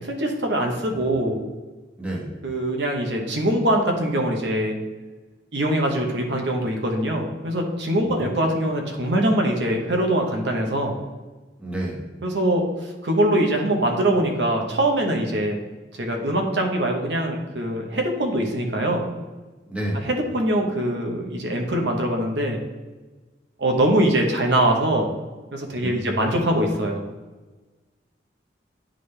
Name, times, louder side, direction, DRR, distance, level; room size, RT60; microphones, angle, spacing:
voice 1, 0.0-1.4 2.4-4.8 5.5-11.0 12.2-15.6 15.9-19.0 20.1-22.6 23.6-25.1 25.5-27.0, right 1 dB, 65° right, 2 dB, 0.9 m, -23 dB
voice 2, 2.0-2.3 8.1-8.3 11.6-12.0 19.7-20.1 25.8-26.2, right 1 dB, 5° right, -3 dB, 1.1 m, -30 dB
9.7 x 3.7 x 3.3 m, 1.3 s
head